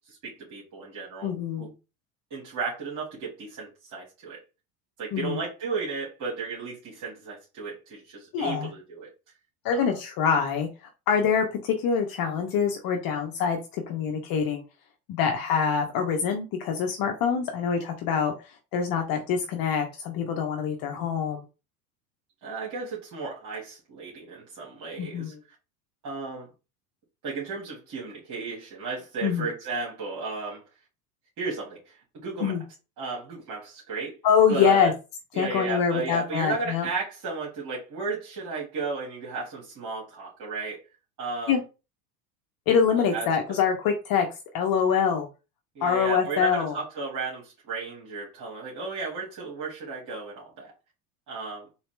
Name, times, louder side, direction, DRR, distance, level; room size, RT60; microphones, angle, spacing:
voice 1, 0.1-1.3 1.6-1.7 2.3-4.4 5.0-9.1 9.7-10.0 22.4-25.3 26.0-26.5 27.2-30.6 31.4-32.6 33.0-34.2 34.5-34.9 35.3-40.8 41.2-41.6 43.1-43.3 45.8-50.7 51.3-51.7, right 4 dB, 45° right, 2.0 m, -34 dB
voice 2, 1.2-1.7 5.1-5.4 8.3-8.7 9.6-10.7 11.1-14.6 15.1-18.3 18.7-21.4 25.0-25.3 29.2-29.4 32.4-32.6 34.2-34.9 35.4-36.9 41.5-41.6 42.7-44.3 44.5-45.3 45.8-46.7, left 7 dB, 50° left, 0.9 m, -25 dB
3.9 x 2.8 x 3.3 m
supercardioid pair, 105°, 44 cm